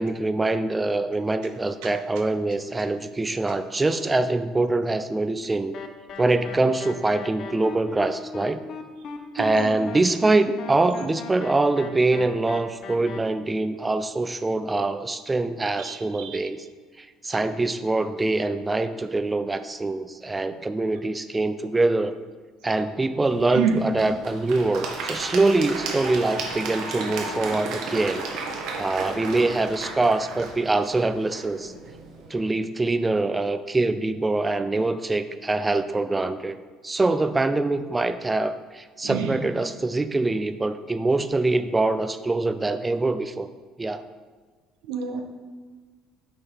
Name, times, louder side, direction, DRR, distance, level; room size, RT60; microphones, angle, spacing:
voice 1, 0.0-5.7 6.2-8.6 9.3-16.6 17.0-22.1 22.6-28.2 28.8-31.7 32.3-36.6 36.8-43.5 43.8-44.0, right 2 dB, 15° right, 10 dB, 0.3 m, -24 dB
sound 1, 5.7-13.2, left 5 dB, 50° left, 0.6 m, -39 dB
voice 2, 15.9-16.3 23.5-23.7 39.0-39.3 44.9-45.2, right 8 dB, 85° right, 4 dB, 0.6 m, -27 dB
Applause / Crowd, 23.2-32.3, right 3 dB, 70° right, 1.1 m, -34 dB
6.5 x 3.7 x 4.5 m, 1.4 s
supercardioid pair, 100°, 0 cm